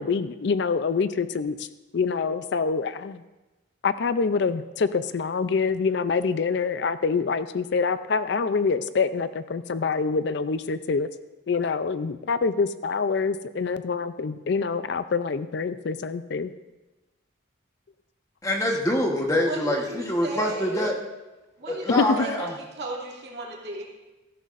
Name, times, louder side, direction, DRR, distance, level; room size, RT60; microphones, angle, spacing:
voice 1, 0.0-1.7 1.9-3.2 3.8-11.1 11.5-16.5 21.9-22.1, left 5 dB, 55° left, 13 dB, 0.4 m, -26 dB
voice 2, 18.4-20.9 21.7-22.5, left 1 dB, 15° left, 1 dB, 1.1 m, -25 dB
voice 3, 19.5-20.9 21.6-23.8, right 2 dB, 55° right, -3 dB, 2.6 m, -36 dB
16.5 x 14.0 x 2.5 m, 1.1 s
head